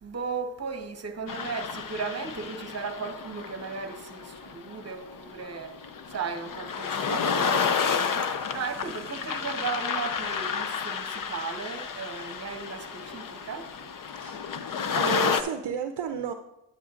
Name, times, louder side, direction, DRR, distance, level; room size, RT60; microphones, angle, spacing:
voice 1, 0.0-5.8 6.1-13.7, right 5 dB, 30° right, 1.1 m, -36 dB
sound 1, 1.3-15.4, left 6 dB, 40° left, 0.7 m, -31 dB
voice 2, 14.2-14.5 14.9-16.3, right 8 dB, 55° right, 0.6 m, -32 dB
10.0 x 9.2 x 2.5 m
cardioid pair, 80°, 49 cm